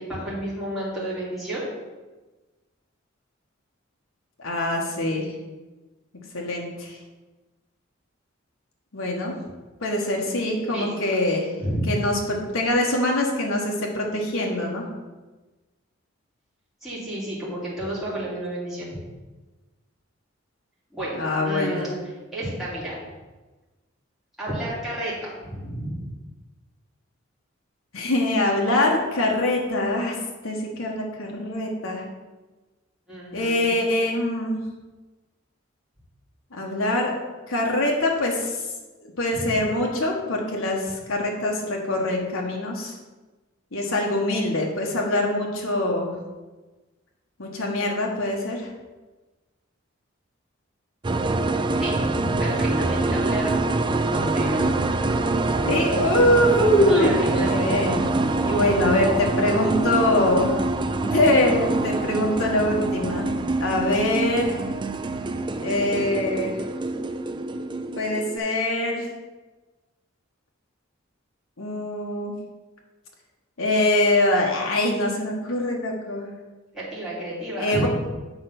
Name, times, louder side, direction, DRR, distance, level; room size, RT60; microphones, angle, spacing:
voice 1, 0.0-1.7 10.7-10.9 11.6-11.9 16.8-19.0 20.9-22.0 22.3-23.0 24.4-26.1 33.1-33.8 39.3-39.5 51.8-53.5 54.1-54.9 56.7-57.5 76.7-77.9, right 1 dB, ahead, -10 dB, 2.8 m, -31 dB
voice 2, 4.4-5.3 6.3-7.0 8.9-9.4 9.8-11.4 11.9-14.9 21.2-21.8 27.9-30.2 30.4-32.0 33.3-34.6 36.5-37.1 37.5-38.6 39.2-42.9 43.7-46.1 47.4-48.7 55.6-58.0 58.4-60.6 61.1-63.3 63.6-64.6 65.6-66.6 68.0-69.1 71.6-72.3 73.6-76.3 77.6-77.9, left 1 dB, 80° left, -1 dB, 1.3 m, -23 dB
sound 1, 51.0-68.4, right 2 dB, 25° right, 0.4 m, -25 dB
7.7 x 4.4 x 5.9 m, 1.2 s
head